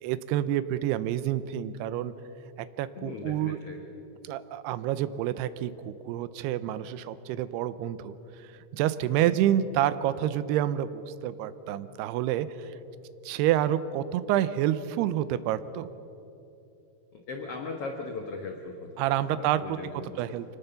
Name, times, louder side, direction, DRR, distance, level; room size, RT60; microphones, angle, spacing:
voice 1, 0.0-2.1 2.6-3.6 4.2-8.2 8.7-12.7 13.3-15.9 19.0-19.6 20.2-20.5, right 12 dB, 85° right, 14 dB, 2.7 m, -28 dB
voice 2, 2.9-3.8 9.2-9.4 17.1-20.4, left 3 dB, 70° left, 4 dB, 1.4 m, -39 dB
25.0 x 19.0 x 6.9 m, 2.9 s
omnidirectional pair, 4.7 m